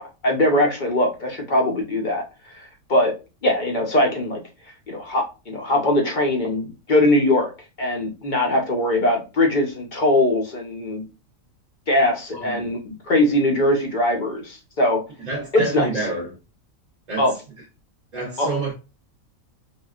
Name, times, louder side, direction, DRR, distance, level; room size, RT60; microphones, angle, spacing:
voice 1, 0.0-3.1 3.4-4.4 4.9-7.5 7.8-11.0 11.9-15.0 15.5-15.9 17.2-17.3 18.4-18.5, left 1 dB, 50° left, 0.6 m, -21 dB
voice 2, 12.3-12.7 15.2-16.4 17.1-17.3 18.1-18.7, right 3 dB, 45° right, 0.6 m, -28 dB
3.5 x 2.3 x 2.3 m
omnidirectional pair, 1.5 m